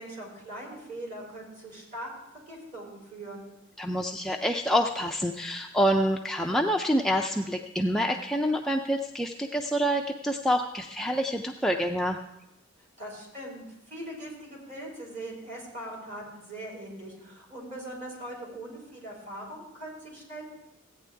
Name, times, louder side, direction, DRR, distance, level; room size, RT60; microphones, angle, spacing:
voice 1, 0.0-2.1 2.5-3.5 13.0-20.4, right 1 dB, 35° right, -3 dB, 3.9 m, -41 dB
voice 2, 3.8-12.2, equal, ahead, 2 dB, 0.3 m, -27 dB
15.0 x 9.0 x 3.4 m, 0.88 s
head